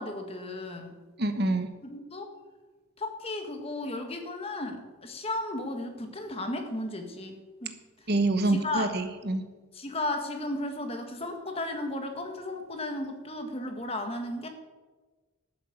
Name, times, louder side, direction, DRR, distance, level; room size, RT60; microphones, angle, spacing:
voice 1, 0.0-1.0 1.4-1.6 1.8-2.3 3.0-8.1 8.5-8.9 9.7-14.5, left 1 dB, 25° left, 5 dB, 1.6 m, -35 dB
voice 2, 1.2-1.7 8.1-9.4, right 2 dB, 45° right, 8 dB, 1.2 m, -26 dB
12.5 x 7.6 x 8.1 m, 1.3 s
head